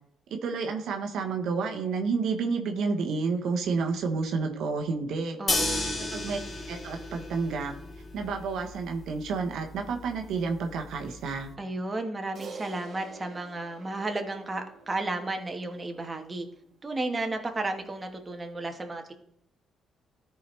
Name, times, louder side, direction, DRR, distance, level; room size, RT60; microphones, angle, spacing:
voice 1, 0.3-5.4 6.1-6.4 6.7-7.7 8.1-11.5, right 4 dB, 75° right, 4 dB, 0.9 m, -30 dB
voice 2, 5.4-6.0 11.6-16.5 16.8-19.1, right 2 dB, 25° right, 4 dB, 1.2 m, -33 dB
sound 1, 5.5-11.5, left 2 dB, 40° left, 1.5 m, -34 dB
Crash cymbal, 12.3-16.9, right 4 dB, 55° right, 1.8 m, -48 dB
13.0 x 4.6 x 3.2 m, 0.72 s
cardioid pair, 90°, 0 cm